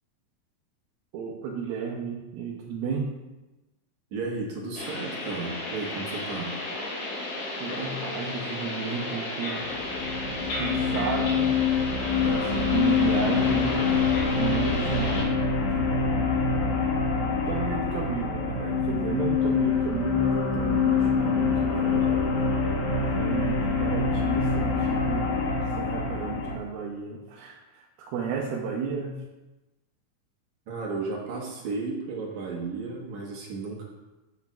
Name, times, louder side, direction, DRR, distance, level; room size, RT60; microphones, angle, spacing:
voice 1, 1.1-3.2 7.6-9.7 10.0-10.2 10.5-11.6 12.0-13.8 14.4-16.4 17.5-22.3 22.5-22.7 23.2-25.4 25.8-29.2, right 5 dB, 80° right, -3 dB, 2.8 m, -33 dB
voice 2, 4.1-6.5 30.7-33.8, right 3 dB, 60° right, -2 dB, 2.3 m, -33 dB
sound 1, 4.8-15.2, left 2 dB, 90° left, 4.2 m, -33 dB
sound 2, 9.6-26.6, left 5 dB, 65° left, 2.5 m, -25 dB
11.5 x 7.2 x 2.3 m, 1.1 s
omnidirectional pair, 4.3 m